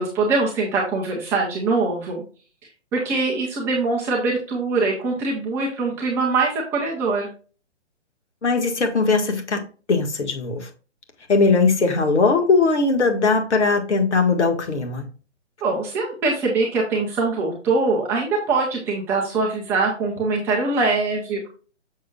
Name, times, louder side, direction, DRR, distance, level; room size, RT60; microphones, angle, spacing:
voice 1, 0.0-2.2 2.9-7.3 15.6-21.5, right 3 dB, 5° right, 0.5 m, -23 dB
voice 2, 8.4-9.6 9.9-10.7 11.3-15.1, left 4 dB, 70° left, 1.8 m, -19 dB
6.8 x 6.4 x 2.3 m
hypercardioid pair, 140°, 36 cm